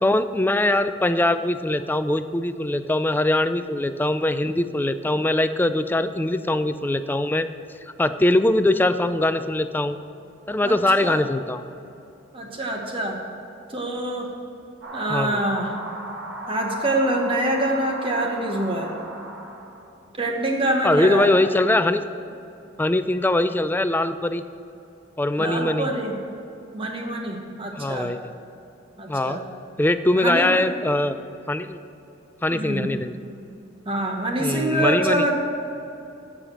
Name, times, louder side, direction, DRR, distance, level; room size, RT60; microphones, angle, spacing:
voice 1, 0.0-7.5 8.0-10.0 10.5-11.6 15.1-15.4 20.8-22.0 22.8-24.4 25.2-25.9 27.8-28.2 29.1-29.4 29.8-31.2 31.5-31.8 32.4-33.1 34.4-35.2, left 1 dB, 10° left, 11 dB, 0.3 m, -22 dB
voice 2, 10.6-11.2 12.3-13.2 13.7-14.3 14.9-15.7 16.5-18.9 20.2-21.3 25.4-26.2 26.7-28.1 29.0-29.4 30.2-30.7 32.5-32.9 33.8-35.4, right 1 dB, 25° right, 1 dB, 1.2 m, -25 dB
sound 1, 14.8-19.9, right 1 dB, 80° right, 1.9 m, -36 dB
15.0 x 5.0 x 6.2 m, 2.9 s
head